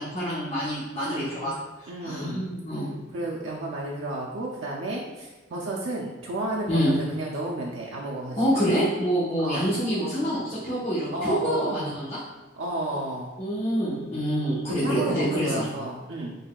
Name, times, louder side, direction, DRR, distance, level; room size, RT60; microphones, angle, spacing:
voice 1, 0.0-1.5 2.0-2.9 6.7-6.9 8.4-12.1 13.4-15.6, equal, 35° left, -12 dB, 1.0 m, -26 dB
voice 2, 1.0-1.5 1.9-2.5 3.1-8.6 9.4-9.6 11.1-12.0 12.6-13.3 14.7-16.3, right 2 dB, 90° right, -2 dB, 0.4 m, -32 dB
4.0 x 3.5 x 2.3 m, 1.1 s
head